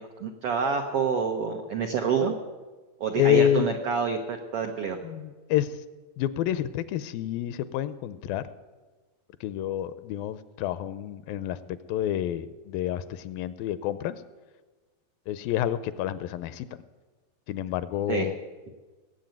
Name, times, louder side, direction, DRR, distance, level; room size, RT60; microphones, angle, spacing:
voice 1, 0.0-2.3 3.0-5.0 18.1-18.3, right 6 dB, 75° right, 4 dB, 1.3 m, -27 dB
voice 2, 3.2-3.7 5.0-5.8 6.2-8.5 9.4-11.6 11.9-14.2 15.3-16.8 17.5-18.3, left 11 dB, 80° left, 14 dB, 2.3 m, -28 dB
19.5 x 7.9 x 9.0 m, 1.3 s
omnidirectional pair, 4.3 m